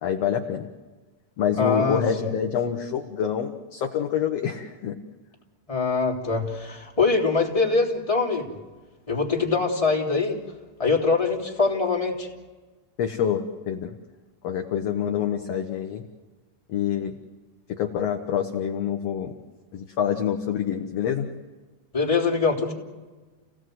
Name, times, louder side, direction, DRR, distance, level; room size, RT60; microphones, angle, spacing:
voice 1, 0.0-0.7 1.4-5.0 13.0-13.9 14.4-16.0 16.7-17.1 17.8-19.3 19.7-21.3, left 8 dB, 60° left, 5 dB, 1.9 m, -26 dB
voice 2, 1.6-2.3 5.7-8.5 9.1-10.4 10.8-12.3 21.9-22.7, left 4 dB, 10° left, -1 dB, 2.9 m, -23 dB
29.5 x 17.0 x 7.9 m, 1.3 s
omnidirectional pair, 3.8 m